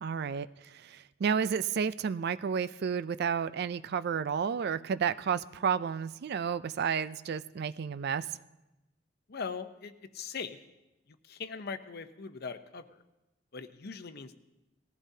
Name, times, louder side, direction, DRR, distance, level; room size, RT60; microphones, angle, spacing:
voice 1, 0.0-8.3, right 7 dB, 55° right, 15 dB, 0.4 m, -31 dB
voice 2, 9.3-10.6 11.2-13.0 13.5-14.4, left 5 dB, 55° left, 10 dB, 0.7 m, -40 dB
19.5 x 15.0 x 2.8 m, 0.98 s
head